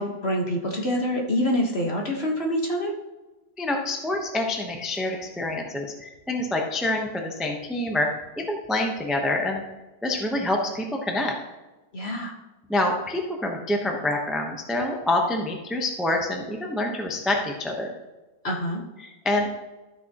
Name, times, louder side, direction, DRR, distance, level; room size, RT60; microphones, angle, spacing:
voice 1, 0.0-2.9 11.9-12.3 18.4-18.8, equal, 45° left, 0 dB, 1.6 m, -26 dB
voice 2, 3.6-8.1 8.4-9.6 10.0-11.4 12.7-17.9 19.0-19.5, left 1 dB, ahead, 1 dB, 0.7 m, -26 dB
13.5 x 6.3 x 3.0 m, 1.1 s
omnidirectional pair, 1.6 m